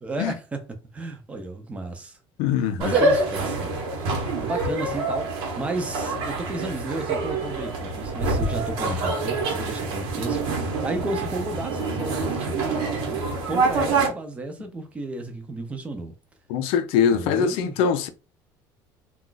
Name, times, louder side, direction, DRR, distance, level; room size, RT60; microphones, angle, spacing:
voice 1, 0.0-2.2 2.6-3.8 4.4-10.4 10.8-16.1 17.1-17.8, right 2 dB, 15° right, 0.5 m, -33 dB
voice 2, 2.4-2.8 16.5-18.1, left 7 dB, 75° left, 0.4 m, -22 dB
sound 1, 2.8-14.1, right 3 dB, 70° right, 1.0 m, -26 dB
2.4 x 2.3 x 3.8 m
cardioid pair, 170°, 9 cm